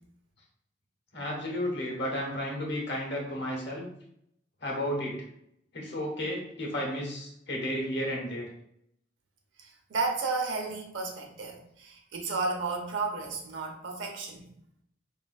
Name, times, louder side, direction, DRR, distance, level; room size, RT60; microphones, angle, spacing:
voice 1, 1.1-3.9 4.6-5.3 5.7-8.5, equal, 65° left, -1 dB, 0.9 m, -33 dB
voice 2, 9.6-14.5, right 3 dB, 80° right, 1 dB, 0.6 m, -33 dB
3.2 x 2.4 x 2.3 m, 0.75 s
head